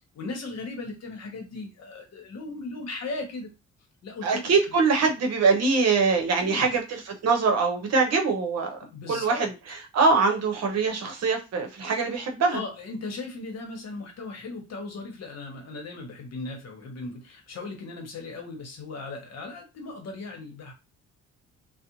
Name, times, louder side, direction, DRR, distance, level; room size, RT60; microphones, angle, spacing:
voice 1, 0.1-3.5 4.0-4.5 6.4-6.8 8.8-9.5 12.5-20.7, left 3 dB, 60° left, 2 dB, 1.0 m, -37 dB
voice 2, 4.2-8.8 9.1-12.6, right 4 dB, 55° right, 3 dB, 0.8 m, -23 dB
2.5 x 2.1 x 2.9 m, 0.27 s
cardioid pair, 90°, 30 cm